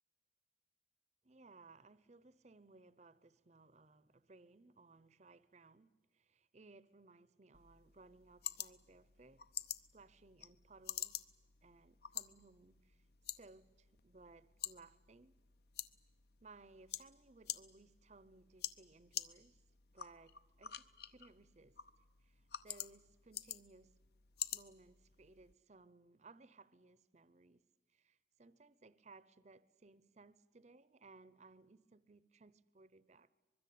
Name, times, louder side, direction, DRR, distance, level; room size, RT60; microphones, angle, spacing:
voice 1, 1.2-9.4 9.9-11.3 11.6-13.1 13.3-15.4 16.4-19.6 19.9-21.8 22.2-24.0 24.5-27.6 27.9-33.3, right 3 dB, 40° right, 0.7 m, -62 dB
sound 1, 7.5-25.5, left 11 dB, 55° left, 0.8 m, -49 dB
24.0 x 22.0 x 8.6 m
head